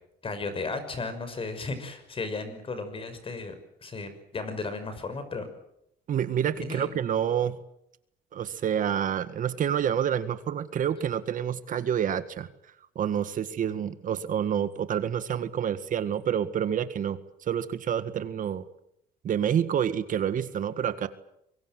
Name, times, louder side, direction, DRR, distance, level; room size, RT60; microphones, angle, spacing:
voice 1, 0.2-3.6 3.8-5.5 6.6-6.9, left 3 dB, 30° left, 10 dB, 6.1 m, -34 dB
voice 2, 6.1-7.6 8.3-12.5 12.9-17.2 17.5-18.6 19.2-21.1, right 9 dB, 50° right, 12 dB, 1.7 m, -28 dB
25.0 x 23.0 x 7.9 m, 0.79 s
cardioid pair, 110°, 17 cm